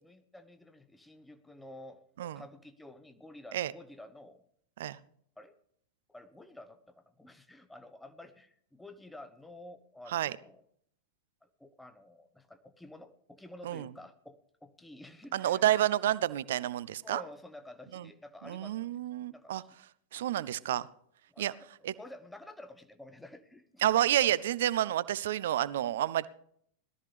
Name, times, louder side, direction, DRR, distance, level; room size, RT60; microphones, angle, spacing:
voice 1, 0.0-2.0 2.3-4.4 5.4-5.6 6.1-10.6 11.4-15.6 17.0-19.7 20.1-20.3 21.3-23.9 25.1-25.2 26.2-26.3, left 1 dB, 5° left, 9 dB, 0.9 m, -51 dB
voice 2, 15.3-17.2 17.9-18.1 18.5-19.6 20.1-20.9 21.4-21.5 21.8-21.9 23.8-26.3, right 12 dB, 60° right, 18 dB, 0.5 m, -29 dB
18.5 x 13.0 x 3.3 m, 0.67 s
figure-of-eight pair, 90°, 0 cm